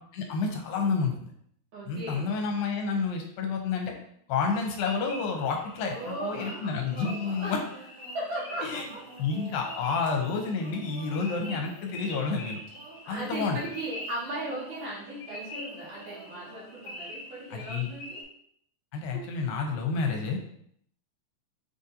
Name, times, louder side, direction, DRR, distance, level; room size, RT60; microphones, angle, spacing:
voice 1, 0.1-1.3 1.9-3.9 4.3-7.6 8.6-8.9 9.2-12.6 13.1-13.6 17.5-17.9 18.9-20.5, left 5 dB, 80° left, 2 dB, 2.3 m, -29 dB
voice 2, 1.7-2.4 5.8-7.6 8.1-9.0 11.4-11.6 13.0-18.2 19.1-19.3, right 1 dB, 65° right, -7 dB, 2.1 m, -37 dB
sound 1, 4.5-18.2, left 1 dB, 60° left, 2.0 m, -45 dB
sound 2, 5.9-17.0, right 5 dB, 85° right, 2.4 m, -49 dB
6.5 x 2.5 x 2.7 m, 0.68 s
omnidirectional pair, 4.1 m